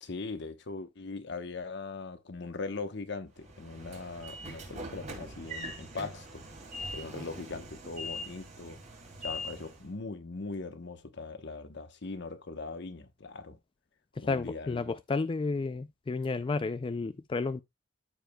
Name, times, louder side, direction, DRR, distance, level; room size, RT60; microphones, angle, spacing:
voice 1, 0.0-6.4 6.9-8.8 9.2-13.6 14.2-14.8, left 3 dB, 65° left, 1.0 m, -40 dB
Train / Sliding door, 3.4-9.9, equal, 40° right, 2.3 m, -42 dB
voice 2, 14.2-17.6, left 3 dB, 25° left, 0.3 m, -32 dB
13.5 x 5.0 x 2.2 m
head